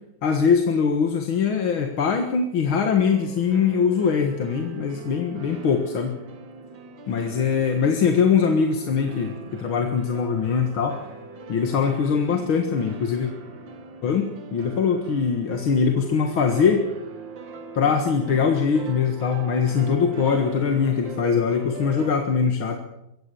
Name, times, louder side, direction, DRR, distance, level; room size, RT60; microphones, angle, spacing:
voice 1, 0.2-6.2 7.1-11.0 11.5-13.3 14.0-16.9 17.7-22.8, left 6 dB, 65° left, 5 dB, 2.4 m, -22 dB
sound 1, 3.0-22.1, right 4 dB, 60° right, 2.5 m, -40 dB
23.5 x 17.0 x 6.9 m, 0.89 s
omnidirectional pair, 2.4 m